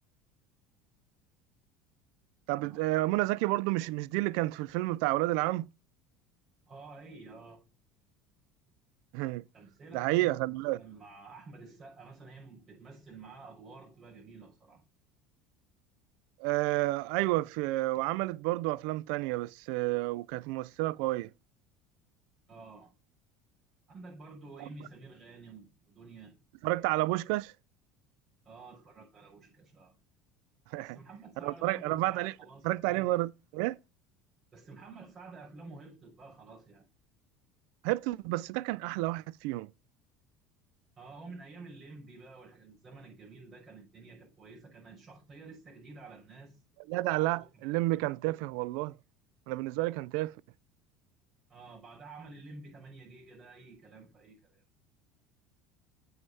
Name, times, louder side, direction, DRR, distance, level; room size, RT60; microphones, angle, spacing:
voice 1, 2.5-5.7 9.1-9.4 9.9-10.8 16.4-21.3 24.6-24.7 26.6-27.5 30.7-31.0 31.4-32.3 32.6-33.8 37.8-39.7 46.9-48.9 49.5-50.3, right 19 dB, 75° right, 0.4 m, -30 dB
voice 2, 6.7-7.6 9.5-14.8 22.5-22.9 23.9-26.3 28.4-30.0 30.8-33.2 34.5-36.9 41.0-46.6 47.3-47.5 48.0-48.1 51.5-54.6, right 3 dB, 35° right, 5.7 m, -50 dB
7.8 x 5.6 x 5.4 m
supercardioid pair, 95°, 0 cm